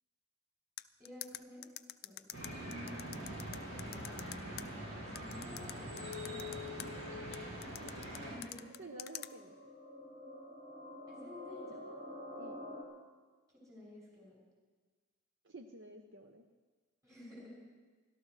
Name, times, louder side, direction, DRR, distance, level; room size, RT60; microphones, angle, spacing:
sound 1, 0.8-4.6 5.2-6.9 7.3-9.3, left 14 dB, 45° left, 0.4 m, -45 dB
voice 1, 1.0-1.7 2.0-2.2 5.0-7.0 8.2-8.7 11.1-11.8 13.5-14.4 17.0-17.6, left 1 dB, 15° right, -5 dB, 6.5 m, -52 dB
sound 2, 2.3-8.4, equal, 85° right, 6.0 m, -43 dB
voice 2, 2.9-3.4 8.8-9.7 12.3-12.6 15.4-16.4, right 2 dB, 55° right, 4 dB, 0.8 m, -52 dB
sound 3, 7.9-12.8, left 1 dB, 30° right, 2.2 m, -49 dB
29.5 x 12.5 x 3.3 m, 1.4 s
head